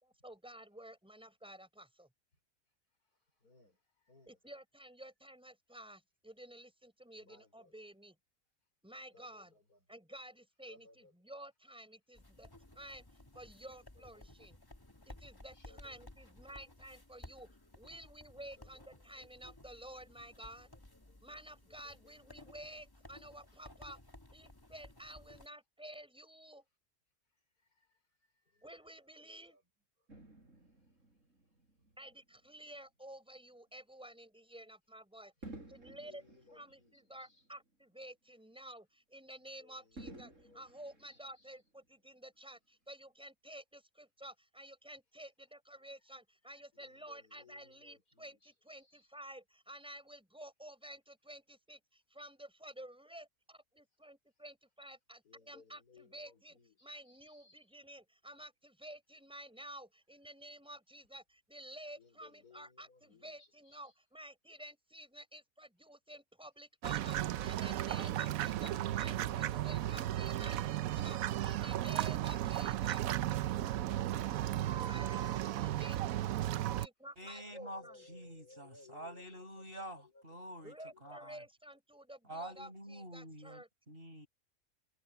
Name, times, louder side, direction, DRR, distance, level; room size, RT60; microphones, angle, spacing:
voice 1, 0.0-2.1 4.3-8.2 8.8-9.5 9.9-12.5 12.7-13.1 13.3-14.6 15.1-20.7 21.2-24.0 24.3-26.6 28.6-29.6 32.0-35.3 35.6-36.2 36.5-40.3 40.5-73.0 74.9-76.0 76.8-78.1 80.6-83.7, right 1 dB, 5° right, 5.7 m, -52 dB
voice 2, 3.0-4.4 7.2-7.7 9.1-10.0 10.6-11.1 13.7-14.5 14.9-15.0 15.5-16.6 18.6-19.3 20.7-21.4 21.7-22.1 27.2-29.6 30.0-30.1 30.6-31.2 31.5-31.6 35.4-37.5 39.4-41.6 46.5-49.1 55.2-57.7 62.0-64.0 73.7-75.1 75.8-76.1 77.4-81.2, left 3 dB, 80° left, 5.7 m, -64 dB
sound 1, 12.1-25.5, left 1 dB, 15° left, 1.6 m, -57 dB
Fireworks, 30.1-32.7 33.3-33.5 35.4-37.9 38.3-38.4 40.0-41.8 42.6-42.7, right 2 dB, 55° right, 5.4 m, -54 dB
sound 2, 66.8-76.9, right 13 dB, 70° right, 1.0 m, -35 dB
voice 3, 77.2-81.4 82.2-84.3, equal, 35° right, 5.6 m, -48 dB
omnidirectional pair, 1.6 m